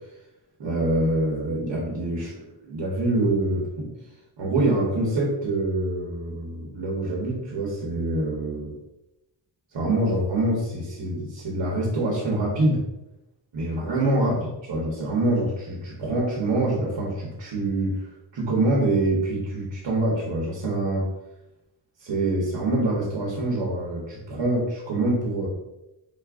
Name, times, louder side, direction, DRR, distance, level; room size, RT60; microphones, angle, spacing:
voice 1, 0.6-2.4 2.6-3.9 4.4-8.8 9.7-12.8 13.5-18.0 18.3-21.0 22.0-25.5, right 2 dB, 70° right, -3 dB, 1.0 m, -25 dB
3.8 x 2.5 x 3.5 m, 0.94 s
wide cardioid pair, 165°, 46 cm